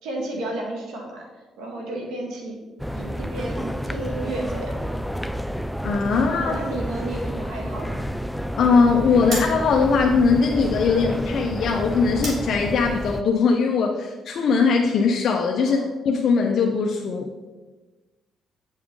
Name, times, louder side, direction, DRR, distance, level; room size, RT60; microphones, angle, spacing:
voice 1, 0.0-1.3 1.6-2.6 2.9-4.9 6.3-8.1 15.6-15.9, right 2 dB, 90° right, 0 dB, 1.7 m, -32 dB
sound 1, 2.8-13.2, equal, ahead, 0.3 m, -30 dB
voice 2, 5.8-6.5 8.6-15.8 16.0-17.3, left 5 dB, 65° left, 1 dB, 0.6 m, -20 dB
sound 2, 9.2-14.7, right 2 dB, 70° right, 2.2 m, -41 dB
8.9 x 5.6 x 3.7 m, 1.2 s
cardioid pair, 90°, 0 cm